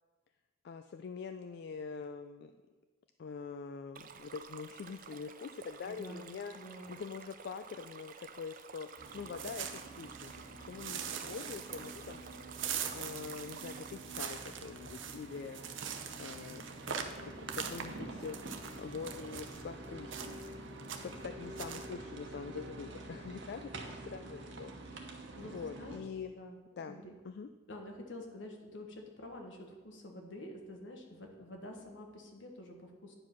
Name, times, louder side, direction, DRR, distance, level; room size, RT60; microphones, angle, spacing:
voice 1, 0.6-2.5 3.2-8.9 9.1-12.2 12.5-12.6 12.9-15.7 16.2-20.6 20.9-26.3 26.8-27.0 27.2-27.5, left 5 dB, 60° left, 8 dB, 0.3 m, -45 dB
Stream, 3.9-13.9, right 6 dB, 45° right, 0.5 m, -52 dB
voice 2, 5.8-7.0 25.3-27.2 27.7-33.1, left 1 dB, 80° left, 2 dB, 1.4 m, -48 dB
sound 1, 9.0-26.0, right 2 dB, 75° right, 1.1 m, -48 dB
sound 2, 9.0-10.4 10.8-19.6 20.1-20.5 20.8-21.2 21.6-21.9, right 8 dB, 90° right, 0.7 m, -42 dB
9.8 x 4.8 x 5.8 m, 1.3 s
head